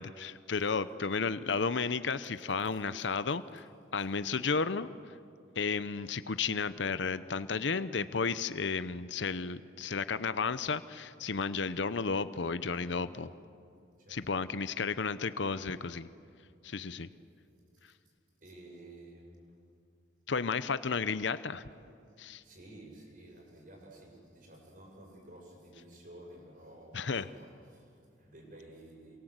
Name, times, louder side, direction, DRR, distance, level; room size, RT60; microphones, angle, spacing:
voice 1, 0.0-4.9 5.6-13.3 14.1-16.1 16.6-17.1 20.3-21.6 22.2-22.4 26.9-27.3, left 5 dB, 80° left, 14 dB, 0.8 m, -33 dB
voice 2, 12.8-13.2 14.0-14.3 16.5-17.9 18.4-19.6 22.4-29.2, right 1 dB, 50° right, -1 dB, 7.4 m, -53 dB
27.5 x 23.5 x 8.1 m, 2.4 s
head